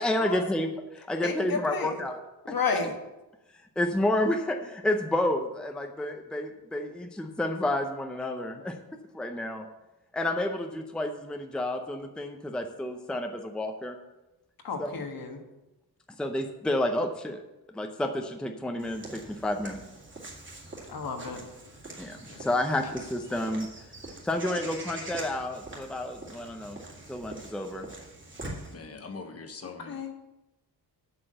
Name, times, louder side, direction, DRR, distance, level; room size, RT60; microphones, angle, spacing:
voice 1, 0.0-2.2 2.5-2.6 3.8-8.8 9.1-9.7 10.1-14.0 14.8-15.0 16.2-17.4 17.7-19.8 22.0-23.7 24.2-26.8 27.1-27.9, left 1 dB, ahead, 5 dB, 0.6 m, -30 dB
voice 2, 1.2-2.0 2.5-2.9 14.6-15.4 20.9-21.4 29.6-30.1, left 5 dB, 65° left, 4 dB, 1.5 m, -32 dB
Walk footsteps / Bird vocalization bird call bird song, 18.8-28.7, right 2 dB, 30° right, 2.3 m, -44 dB
voice 3, 28.7-30.0, left 4 dB, 40° left, 6 dB, 1.2 m, -43 dB
7.9 x 6.1 x 7.8 m, 1.0 s
wide cardioid pair, 145°, 38 cm